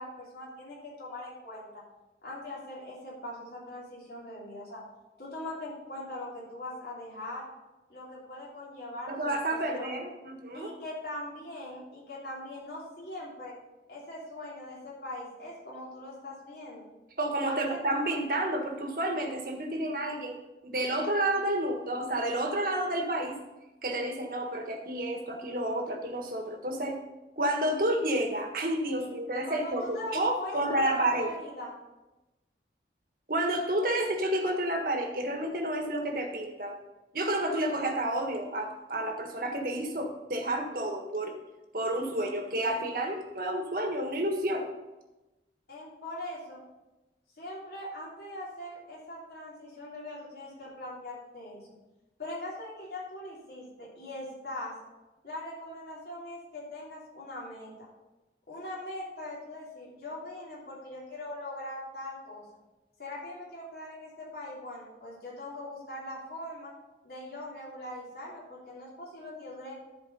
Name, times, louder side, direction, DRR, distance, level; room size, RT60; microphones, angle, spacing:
voice 1, 0.0-1.7 2.2-4.8 5.2-7.5 7.9-9.4 9.7-9.9 10.5-13.5 13.9-16.8 17.4-17.8 29.0-29.1 29.4-31.7 45.7-46.6 47.4-51.6 52.2-54.7 55.2-57.9 58.5-62.4 63.0-66.7 67.0-69.8, left 1 dB, 60° left, -6 dB, 3.2 m, -41 dB
voice 2, 9.1-10.7 17.2-20.4 20.6-23.3 23.8-27.0 27.4-31.3 33.3-36.8 37.1-41.3 41.7-44.6, right 1 dB, 50° right, 3 dB, 1.5 m, -30 dB
14.0 x 4.7 x 5.4 m, 1.1 s
head